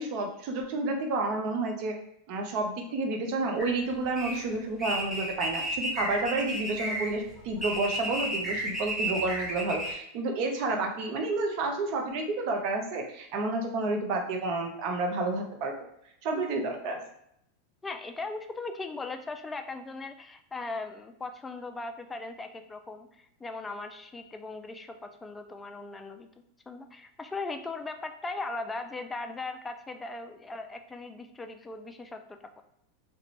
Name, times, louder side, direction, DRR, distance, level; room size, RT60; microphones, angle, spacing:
voice 1, 0.0-1.9 2.3-15.7 16.2-17.0, right 2 dB, 55° right, 3 dB, 0.6 m, -30 dB
sound 1, 3.6-9.9, right 1 dB, 5° right, 0.9 m, -33 dB
voice 2, 17.8-23.1 23.4-26.3 26.7-32.6, left 3 dB, 15° left, 6 dB, 0.3 m, -38 dB
2.4 x 2.2 x 3.0 m, 0.73 s
hypercardioid pair, 95°, 0 cm